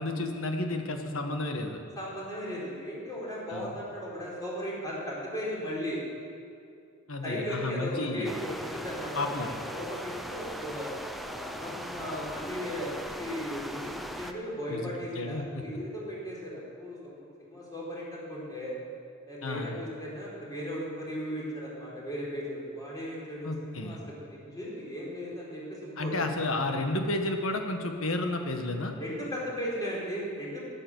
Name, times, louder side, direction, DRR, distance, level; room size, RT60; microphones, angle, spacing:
voice 1, 0.0-1.8 3.5-3.7 7.1-8.3 9.1-9.5 14.7-15.6 19.4-19.7 23.4-24.0 26.0-28.9, left 2 dB, 75° left, 4 dB, 1.6 m, -32 dB
voice 2, 2.0-6.0 7.2-10.9 11.2-18.7 19.3-26.2 29.0-30.6, equal, 20° left, -5 dB, 4.4 m, -36 dB
sound 1, 8.2-14.3, equal, ahead, 0.7 m, -39 dB
13.0 x 9.9 x 8.0 m, 2.4 s
head